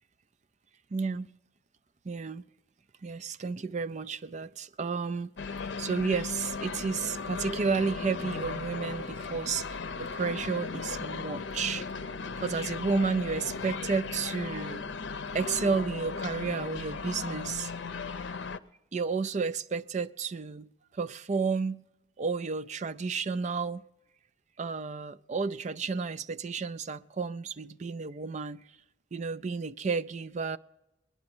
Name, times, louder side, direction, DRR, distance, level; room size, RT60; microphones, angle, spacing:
voice 1, 0.9-1.3 2.0-2.4 3.0-5.3 5.8-11.8 12.4-14.9 15.3-17.7 18.9-21.8 22.2-23.8 24.6-28.6 29.1-30.6, right 4 dB, 40° right, 0.4 m, -32 dB
sound 1, 5.4-18.6, left 4 dB, 85° left, 0.6 m, -37 dB
19.5 x 11.0 x 6.0 m
head